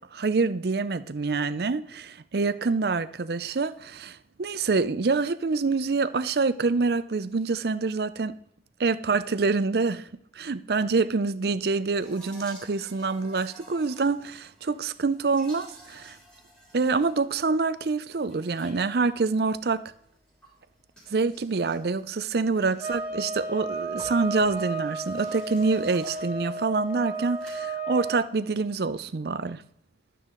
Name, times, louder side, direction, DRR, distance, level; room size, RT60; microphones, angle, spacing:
voice 1, 0.1-8.4 8.8-10.1 10.4-16.2 16.7-19.8 21.1-29.6, right 4 dB, 60° right, 0.5 m, -26 dB
sound 1, 12.0-27.5, right 1 dB, 5° left, 4.0 m, -53 dB
sound 2, 22.8-28.2, right 3 dB, 10° right, 3.3 m, -33 dB
12.0 x 9.2 x 3.8 m
head